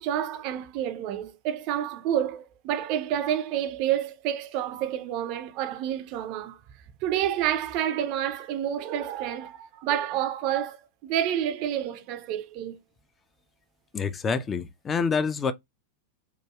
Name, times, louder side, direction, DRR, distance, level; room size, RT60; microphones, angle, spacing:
voice 1, 0.0-6.6 7.0-12.8, right 10 dB, 45° right, 0.4 m, -29 dB
voice 2, 13.9-15.5, left 5 dB, 20° left, 0.4 m, -27 dB
3.0 x 2.3 x 2.2 m
figure-of-eight pair, 90°, 0 cm